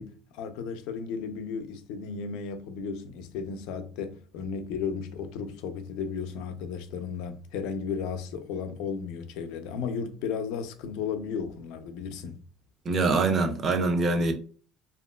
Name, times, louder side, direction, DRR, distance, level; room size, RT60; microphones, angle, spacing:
voice 1, 0.0-12.4, left 6 dB, 75° left, 0.4 m, -34 dB
voice 2, 12.9-14.3, right 3 dB, 25° right, 0.4 m, -24 dB
2.8 x 2.4 x 2.2 m
cardioid pair, 165°, 0 cm